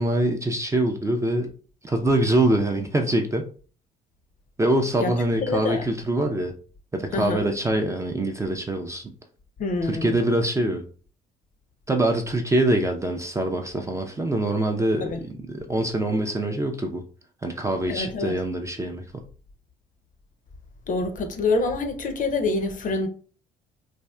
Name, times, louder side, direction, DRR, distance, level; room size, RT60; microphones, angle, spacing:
voice 1, 0.0-1.5 1.8-3.5 4.6-6.5 6.9-9.0 9.9-10.8 11.9-17.0 17.4-19.2, right 1 dB, 15° right, 0.4 m, -24 dB
voice 2, 5.4-5.8 7.1-7.4 9.6-10.2 15.0-15.2 17.8-18.3 20.9-23.1, left 3 dB, 40° left, 0.6 m, -26 dB
3.4 x 2.3 x 2.2 m
hypercardioid pair, 50°, 21 cm